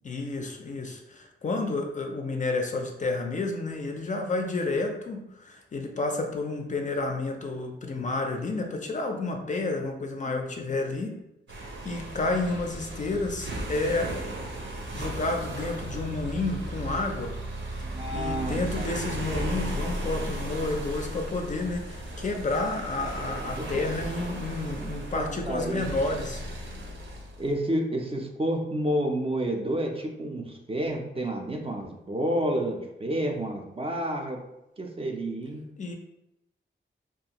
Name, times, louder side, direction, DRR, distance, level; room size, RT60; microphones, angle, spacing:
voice 1, 0.0-11.2 11.8-14.1 14.9-17.4 18.1-26.4 35.8-35.9, left 3 dB, 40° left, 3 dB, 0.4 m, -30 dB
voice 2, 10.3-10.6 17.9-19.0 23.0-23.1 23.6-23.8 25.1-25.8 27.4-34.4 34.8-35.6, right 1 dB, 30° right, 2 dB, 0.4 m, -30 dB
sound 1, 11.5-27.6, right 1 dB, 70° right, 0.7 m, -35 dB
2.6 x 2.3 x 2.8 m, 0.88 s
wide cardioid pair, 130°, 20 cm